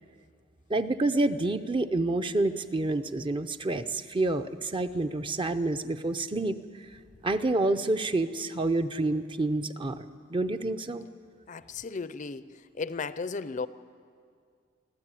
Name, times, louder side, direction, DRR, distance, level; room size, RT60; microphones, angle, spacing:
voice 1, 0.7-6.6 7.2-11.1, right 2 dB, 25° right, 9 dB, 0.6 m, -28 dB
voice 2, 11.5-12.5 12.7-13.7, left 4 dB, 40° left, 14 dB, 0.5 m, -34 dB
24.0 x 14.0 x 9.0 m, 2.2 s
head